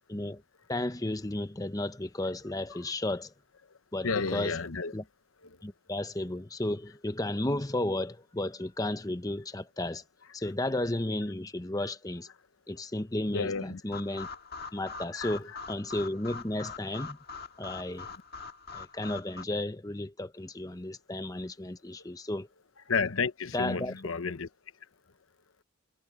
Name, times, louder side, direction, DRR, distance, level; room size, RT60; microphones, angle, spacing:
voice 1, 0.1-0.4 0.7-3.3 3.9-4.5 4.9-5.0 5.6-10.0 10.3-12.3 12.7-14.3 14.7-17.2 17.6-18.1 18.7-22.5 23.5-23.9, left 1 dB, 15° left, 0.9 m, -33 dB
voice 2, 4.0-4.9 5.4-5.6 10.4-10.5 13.3-13.8 15.1-15.6 18.1-18.2 22.9-24.5, left 4 dB, 80° left, 1.0 m, -32 dB
sound 1, 13.9-19.4, left 5 dB, 50° left, 1.7 m, -43 dB
head